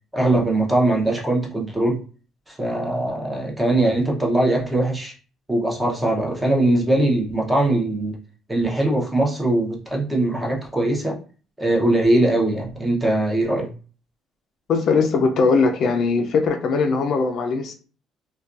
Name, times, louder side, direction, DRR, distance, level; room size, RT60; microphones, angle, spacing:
voice 1, 0.1-2.0 2.5-5.1 5.5-8.1 8.5-11.2 11.6-13.7, right 1 dB, 10° right, 0.7 m, -21 dB
voice 2, 14.7-17.7, left 4 dB, 55° left, 0.4 m, -20 dB
2.4 x 2.2 x 2.4 m
cardioid pair, 115°, 0 cm